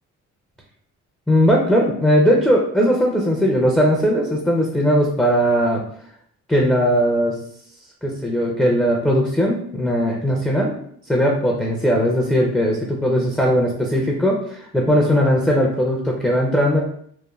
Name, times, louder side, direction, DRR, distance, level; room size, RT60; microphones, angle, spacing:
voice 1, 1.3-5.8 6.5-7.3 8.0-10.7 11.1-16.8, equal, 5° left, -2 dB, 0.4 m, -18 dB
3.1 x 2.1 x 2.3 m, 0.65 s
cardioid pair, 90°, 30 cm